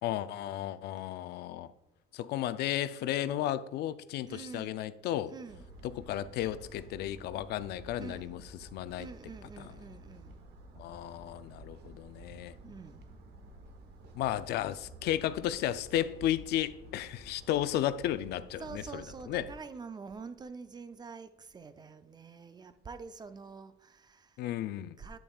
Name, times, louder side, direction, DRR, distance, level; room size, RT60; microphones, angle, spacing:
voice 1, 0.0-1.7 2.1-5.3 5.8-9.1 9.6-9.7 10.8-12.6 14.2-19.5 24.4-25.0, left 12 dB, 75° left, 0.4 m, -34 dB
voice 2, 4.3-4.8 5.3-5.7 8.0-8.3 9.0-10.4 12.6-13.2 18.6-24.4 25.0-25.2, right 5 dB, 25° right, 0.5 m, -46 dB
sound 1, 5.5-19.6, right 1 dB, 75° right, 1.2 m, -52 dB
9.1 x 8.6 x 2.3 m
cardioid pair, 110°, 17 cm